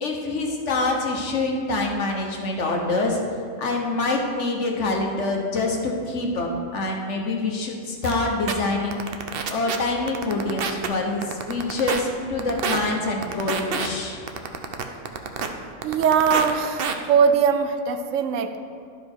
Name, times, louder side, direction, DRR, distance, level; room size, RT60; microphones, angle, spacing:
voice 1, 0.0-3.2 3.6-9.0 9.5-14.2, left 2 dB, 65° left, 1 dB, 1.4 m, -25 dB
sound 1, 8.0-8.1 8.5-8.6 8.9-9.8 10.1-10.9 11.2-12.0 12.4-12.8 13.2-13.9 14.3-15.5 15.8-16.5 16.8-16.9, right 6 dB, 55° right, 0.7 m, -26 dB
voice 2, 15.8-18.6, right 6 dB, 80° right, 8 dB, 1.0 m, -21 dB
11.5 x 5.2 x 4.4 m, 2.2 s
omnidirectional pair, 1.3 m